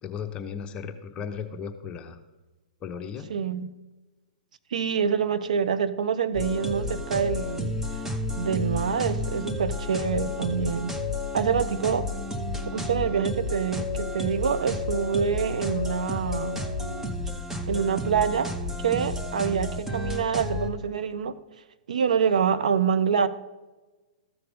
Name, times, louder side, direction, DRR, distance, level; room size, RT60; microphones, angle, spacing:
voice 1, 0.0-2.2 2.8-3.3, left 7 dB, 25° left, 0.9 m, -35 dB
voice 2, 3.3-3.7 4.7-7.7 8.4-11.0 11.3-12.1 12.7-16.6 17.7-18.5 18.8-21.3 21.9-23.3, right 7 dB, 75° right, 0.6 m, -26 dB
sound 1, 6.3-20.7, left 2 dB, 10° right, 1.0 m, -31 dB
14.0 x 4.7 x 5.1 m
hypercardioid pair, 120°, 4 cm